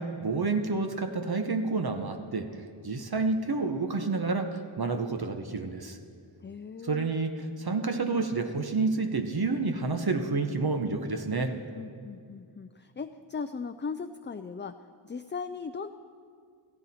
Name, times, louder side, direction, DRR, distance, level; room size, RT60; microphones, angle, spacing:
voice 1, 0.0-2.5 2.8-6.0 6.8-7.3 7.6-11.5, right 3 dB, 50° right, 6 dB, 1.0 m, -29 dB
voice 2, 6.4-7.1 11.8-15.9, left 5 dB, 25° left, 9 dB, 0.4 m, -38 dB
15.5 x 15.0 x 4.2 m, 2.2 s
wide cardioid pair, 55°, 47 cm